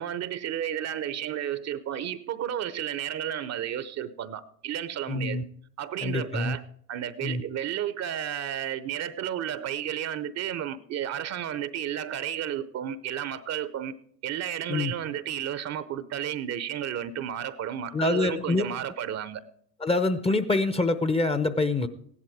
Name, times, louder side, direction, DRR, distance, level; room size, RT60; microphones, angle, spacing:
voice 1, 0.0-5.4 5.8-13.9 14.2-19.4, right 10 dB, 35° right, 0.8 m, -32 dB
voice 2, 5.1-5.4 6.0-6.6 7.2-7.4 14.7-14.9 17.9-18.6 19.8-21.9, left 2 dB, 10° left, 0.8 m, -25 dB
16.0 x 11.0 x 4.8 m
hypercardioid pair, 85°, 49 cm